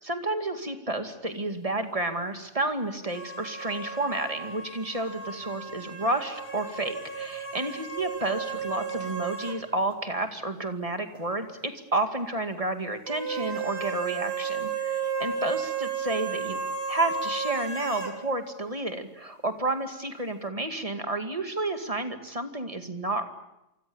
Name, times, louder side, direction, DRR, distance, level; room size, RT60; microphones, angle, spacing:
voice 1, 0.0-16.6 16.9-23.2, right 2 dB, 20° right, 7 dB, 2.4 m, -31 dB
sound 1, 3.1-9.6 9.9-10.0 13.1-18.2, right 5 dB, 40° right, 3.2 m, -33 dB
28.0 x 24.5 x 7.2 m, 0.91 s
omnidirectional pair, 1.7 m